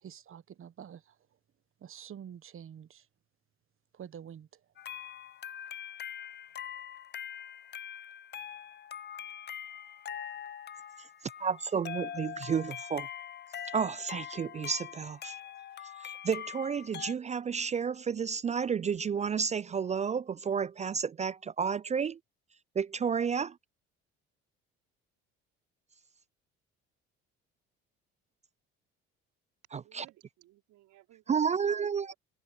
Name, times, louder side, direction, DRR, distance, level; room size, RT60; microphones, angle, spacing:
voice 1, 0.0-1.1 1.8-3.1 3.9-4.6, right 9 dB, 45° right, 1.3 m, -47 dB
sound 1, 4.8-17.1, left 9 dB, 35° left, 0.6 m, -43 dB
voice 2, 11.4-13.1 13.7-15.3 16.0-22.2 22.8-23.6 29.7-30.1 31.3-32.1, right 6 dB, 25° right, 0.3 m, -31 dB
voice 3, 29.8-32.1, right 16 dB, 70° right, 4.7 m, -58 dB
supercardioid pair, 70°, 30 cm